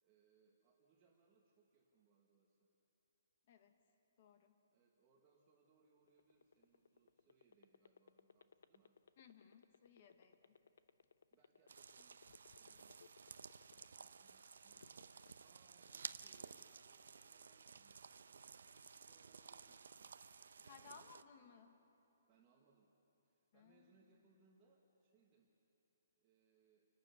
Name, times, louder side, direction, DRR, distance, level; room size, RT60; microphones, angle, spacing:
voice 1, 0.0-2.7 4.7-8.9 11.3-13.0 13.7-14.9 15.4-18.0 18.7-20.1 20.5-21.6 22.3-22.9 23.2-25.5 26.1-26.9, right 5 dB, 15° right, -3 dB, 1.3 m, -75 dB
voice 2, 4.2-4.5 9.2-10.5 20.7-21.8 23.5-24.2, left 6 dB, 30° left, 7 dB, 1.2 m, -62 dB
sound 1, 6.0-14.2 14.6-15.3, left 6 dB, 65° left, 0.6 m, -64 dB
sound 2, 11.7-21.2, right 5 dB, 75° right, 0.7 m, -55 dB
29.0 x 12.0 x 8.1 m, 3.0 s
hypercardioid pair, 175°, 0 cm